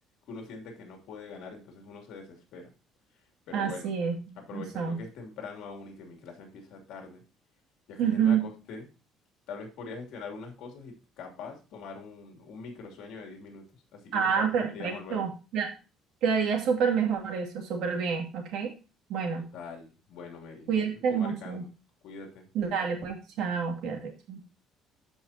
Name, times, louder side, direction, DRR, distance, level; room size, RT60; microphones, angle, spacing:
voice 1, 0.3-2.7 3.5-3.9 4.3-7.2 7.9-8.9 9.5-15.3 19.4-20.8 21.1-21.7 22.0-22.4, left 4 dB, 60° left, 2 dB, 2.8 m, -43 dB
voice 2, 3.5-5.0 8.0-8.5 14.1-15.7 16.2-18.7 19.1-19.5 20.7-21.6 22.5-24.4, right 6 dB, 65° right, 2 dB, 2.5 m, -28 dB
13.5 x 5.6 x 2.8 m, 0.31 s
cardioid pair, 160°, 0 cm